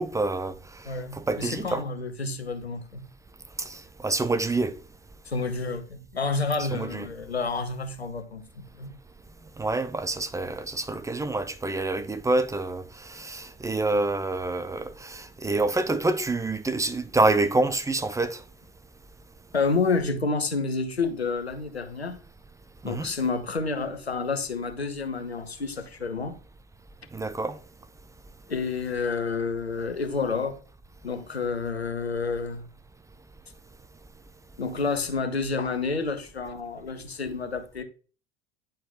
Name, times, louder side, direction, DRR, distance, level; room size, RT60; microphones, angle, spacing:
voice 1, 0.0-0.9 1.3-1.8 3.6-4.8 6.7-7.0 9.6-18.4 22.8-23.1 27.1-27.6, right 2 dB, 10° right, 0.6 m, -27 dB
voice 2, 0.8-3.1 5.2-8.9 19.5-22.2 22.8-26.4 28.5-30.6 31.0-32.6 34.6-37.8, left 4 dB, 85° left, 0.9 m, -29 dB
10.0 x 4.4 x 3.8 m
figure-of-eight pair, 70°, 31 cm